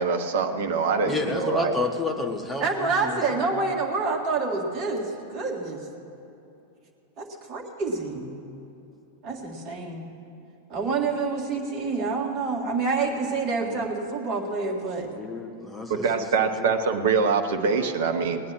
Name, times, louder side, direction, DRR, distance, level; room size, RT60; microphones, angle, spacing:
voice 1, 0.0-1.7 15.9-18.4, right 5 dB, 55° right, 6 dB, 1.1 m, -24 dB
voice 2, 1.0-3.5 13.6-13.9 15.1-16.8, left 3 dB, 10° left, 3 dB, 1.5 m, -31 dB
voice 3, 2.6-5.9 7.2-8.3 9.2-10.1 10.7-15.1, right 4 dB, 30° right, -2 dB, 1.9 m, -27 dB
19.0 x 9.5 x 6.3 m, 2.8 s
figure-of-eight pair, 90°, 0 cm